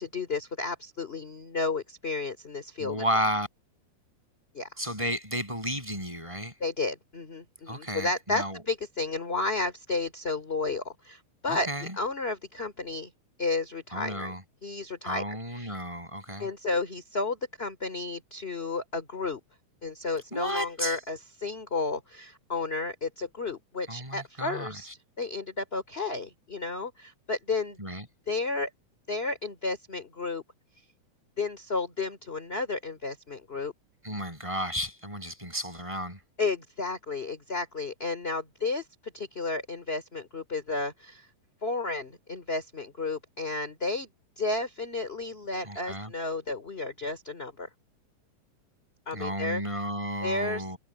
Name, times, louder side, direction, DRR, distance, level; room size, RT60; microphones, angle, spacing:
voice 1, 0.0-3.0 4.5-4.7 6.6-11.7 12.0-13.1 13.4-14.3 14.6-15.7 16.4-19.4 19.8-24.9 25.2-27.8 28.3-28.7 29.1-30.4 31.4-33.7 36.4-41.3 41.6-44.1 44.4-47.7 49.1-49.6 50.2-50.7, left 3 dB, 20° left, 3.0 m, -32 dB
voice 2, 2.8-3.5 4.8-6.5 7.7-8.6 11.5-12.0 13.9-14.4 15.0-16.5 20.3-21.0 23.9-24.8 27.8-28.1 34.0-36.2 45.7-46.1 49.1-50.8, equal, 10° right, 8.0 m, -33 dB
omnidirectional pair, 3.6 m